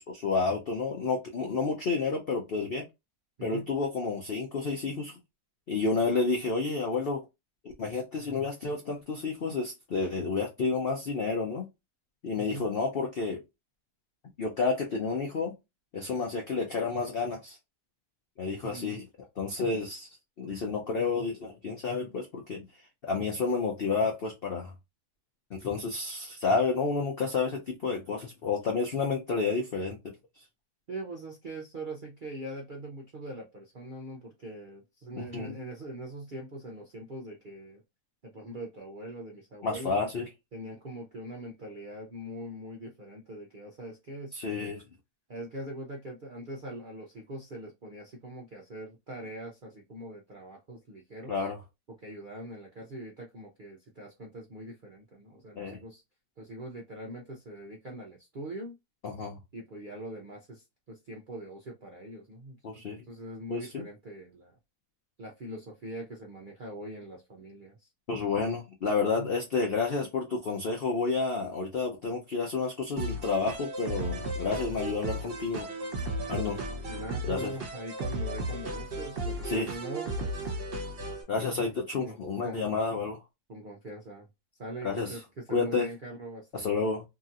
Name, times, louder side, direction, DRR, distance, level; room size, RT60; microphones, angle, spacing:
voice 1, 0.0-2.9 3.4-5.2 5.7-7.2 7.6-11.7 12.2-13.4 14.4-15.6 15.9-17.6 18.4-19.1 19.4-20.1 20.4-22.6 23.0-24.7 25.5-30.0 35.2-35.5 39.6-40.3 44.3-44.8 51.3-51.6 55.6-55.8 59.0-59.4 62.6-63.0 63.5-63.8 68.1-75.7 76.3-76.6 77.3-77.5 79.4-79.7 81.3-83.2 84.8-85.2 85.5-85.9 86.5-87.0, left 4 dB, 70° left, 0.5 m, -30 dB
voice 2, 12.4-12.7 18.6-19.0 30.9-37.8 38.2-40.1 40.5-44.7 45.3-51.5 51.9-56.0 56.4-58.8 59.5-64.5 65.2-67.9 69.2-69.3 76.5-80.6 81.5-81.7 82.0-82.2 82.4-82.6 83.5-84.3 84.6-86.9, right 1 dB, 60° right, 0.5 m, -42 dB
sound 1, 73.0-81.2, right 1 dB, 40° right, 1.1 m, -35 dB
2.9 x 2.7 x 2.4 m
omnidirectional pair, 1.7 m